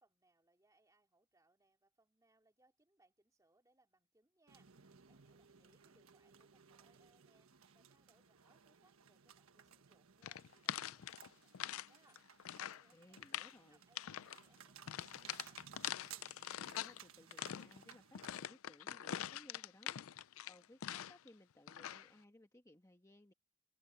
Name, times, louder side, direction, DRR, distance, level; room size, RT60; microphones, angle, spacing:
voice 1, 0.0-4.7 5.1-7.5 7.7-12.2 12.6-13.3 13.7-15.6, right 2 dB, 15° right, 3.2 m, -74 dB
sound 1, 4.5-18.5, right 8 dB, 85° right, 1.4 m, -60 dB
sound 2, 10.2-11.9 12.2-12.8 13.2-13.6 13.9-14.4 14.9-17.0 17.3-21.3 21.7-22.1, left 10 dB, 80° left, 0.5 m, -44 dB
voice 2, 12.9-13.8 16.6-23.3, left 1 dB, 15° left, 1.4 m, -63 dB
head